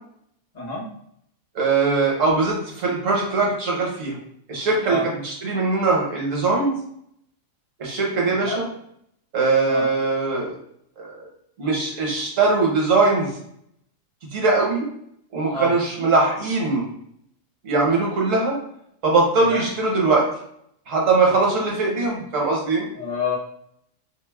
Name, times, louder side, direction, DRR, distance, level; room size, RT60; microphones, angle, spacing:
voice 1, 1.5-4.2 4.5-6.7 7.8-8.7 9.3-10.6 11.0-11.3 11.6-13.3 14.3-14.9 15.3-16.8 17.6-18.6 19.0-20.3 20.9-22.9, right 3 dB, 75° right, -2 dB, 1.3 m, -21 dB
voice 2, 22.9-23.4, left 2 dB, 40° left, -3 dB, 0.7 m, -27 dB
3.9 x 2.0 x 2.2 m, 0.70 s
omnidirectional pair, 1.4 m